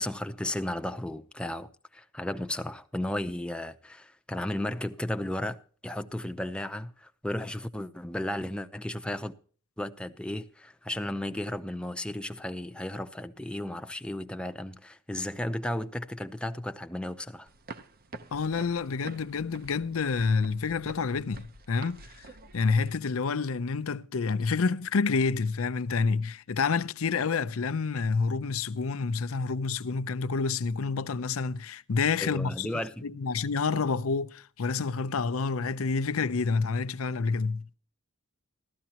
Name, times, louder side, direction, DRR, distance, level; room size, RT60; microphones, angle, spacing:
voice 1, 0.0-5.6 5.8-9.3 9.8-17.5 32.2-33.1, left 1 dB, 5° left, 0.6 m, -34 dB
sound 1, 17.5-22.9, right 2 dB, 45° right, 0.8 m, -47 dB
voice 2, 18.3-22.3 22.5-32.7 33.0-37.6, left 4 dB, 75° left, 0.6 m, -28 dB
15.0 x 13.5 x 2.9 m
head